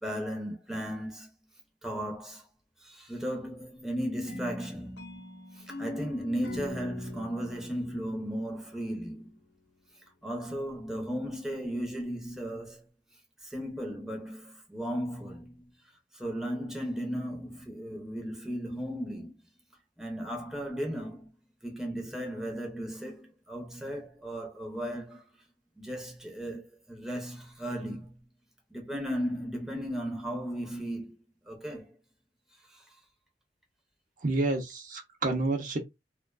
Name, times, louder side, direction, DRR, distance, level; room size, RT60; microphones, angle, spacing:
voice 1, 0.0-1.3 1.8-2.5 2.8-5.0 5.5-9.3 10.2-12.9 13.4-15.7 16.1-19.3 20.0-21.3 21.6-25.2 25.8-28.2 28.7-31.1 31.5-31.9 32.7-32.8, equal, ahead, 0.6 m, -35 dB
sound 1, 4.3-9.2, left 2 dB, 80° left, 0.8 m, -43 dB
voice 2, 34.2-35.8, right 2 dB, 50° right, 0.6 m, -29 dB
2.4 x 2.2 x 2.3 m
head